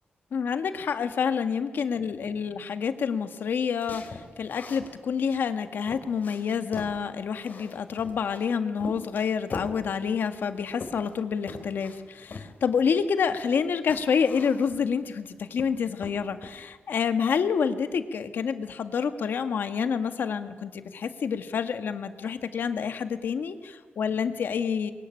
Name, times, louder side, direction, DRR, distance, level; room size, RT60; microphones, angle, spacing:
voice 1, 0.3-24.9, left 6 dB, 80° left, 8 dB, 1.7 m, -28 dB
sound 1, 3.8-4.9 5.5-5.6 5.9-7.0 7.4-8.4 8.8-9.8 10.4-11.2 11.5-12.0 12.3-12.5 13.5-13.6 13.9-14.9 15.3-15.7 16.0-16.6, left 3 dB, 55° left, 3.8 m, -41 dB
22.5 x 21.5 x 10.0 m, 1.4 s
wide cardioid pair, 110°, 3 cm